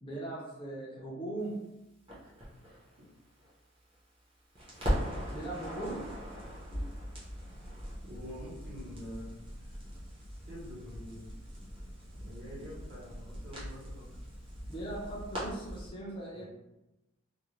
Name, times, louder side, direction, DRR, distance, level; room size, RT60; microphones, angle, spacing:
voice 1, 0.0-1.7 5.3-6.1 14.7-16.4, right 2 dB, 25° left, -4 dB, 0.4 m, -39 dB
Crackle, 2.1-4.2 4.5-15.9, equal, 25° right, 0.7 m, -40 dB
voice 2, 8.1-9.3 10.5-11.2 11.6-11.7 12.1-14.1 16.3-16.4, equal, 50° right, -6 dB, 0.9 m, -46 dB
2.4 x 2.0 x 3.0 m, 0.94 s
head